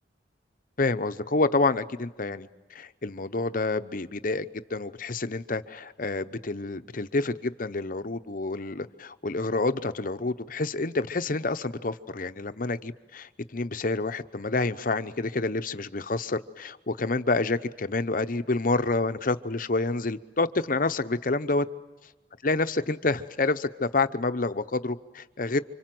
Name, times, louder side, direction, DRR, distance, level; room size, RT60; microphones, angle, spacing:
voice 1, 0.8-21.7 22.4-25.6, left 3 dB, 50° left, 11 dB, 0.9 m, -28 dB
29.0 x 25.5 x 7.8 m, 1.2 s
head